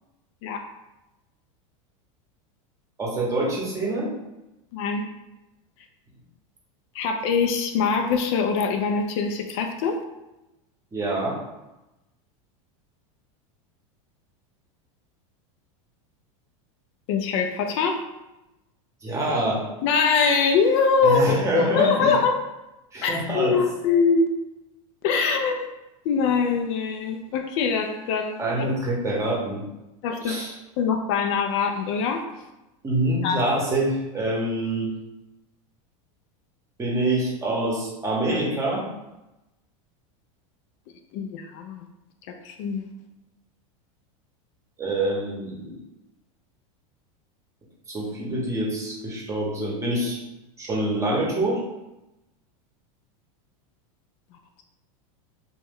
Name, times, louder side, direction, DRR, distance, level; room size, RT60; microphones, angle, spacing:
voice 1, 3.0-4.1 10.9-11.4 19.0-19.6 21.0-22.1 22.9-23.6 28.4-29.6 30.2-30.5 32.8-34.9 36.8-38.8 44.8-45.7 47.9-50.2 50.6-51.6, right 1 dB, 15° right, -3 dB, 0.8 m, -26 dB
voice 2, 4.7-5.0 6.9-10.0 17.1-18.0 19.8-22.4 23.0-24.3 25.0-25.6 26.1-28.6 30.0-30.4 30.8-32.2 33.2-33.4 41.1-41.9 42.4-42.9, left 5 dB, 55° left, 4 dB, 0.4 m, -23 dB
3.0 x 2.2 x 3.5 m, 0.97 s
supercardioid pair, 135°, 17 cm